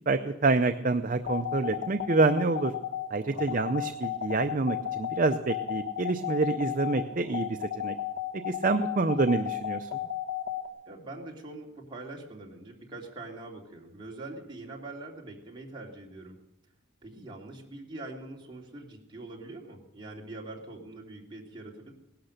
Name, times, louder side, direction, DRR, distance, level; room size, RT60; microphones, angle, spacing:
voice 1, 0.1-2.7 3.1-8.0 8.4-9.9, right 3 dB, 40° right, 8 dB, 0.6 m, -27 dB
sound 1, 1.2-10.7, left 12 dB, 70° left, 1.4 m, -33 dB
voice 2, 3.3-3.9 10.9-16.4 17.0-21.9, right 2 dB, 25° right, -2 dB, 2.8 m, -43 dB
18.0 x 12.0 x 6.6 m, 0.88 s
head